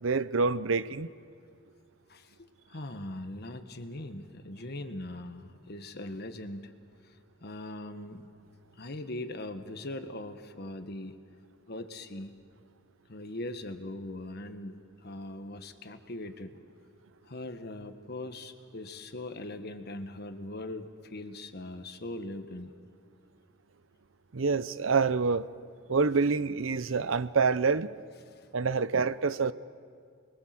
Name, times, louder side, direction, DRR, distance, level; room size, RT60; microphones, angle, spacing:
voice 1, 0.0-1.1 24.3-25.5 25.9-27.9 28.5-29.5, right 4 dB, 70° right, 0.7 m, -27 dB
voice 2, 2.1-6.7 7.1-7.2 7.4-8.3 8.8-11.2 11.7-12.3 13.1-16.6 17.2-22.7 28.4-28.5, left 1 dB, 50° left, 1.5 m, -40 dB
29.5 x 22.0 x 7.7 m
head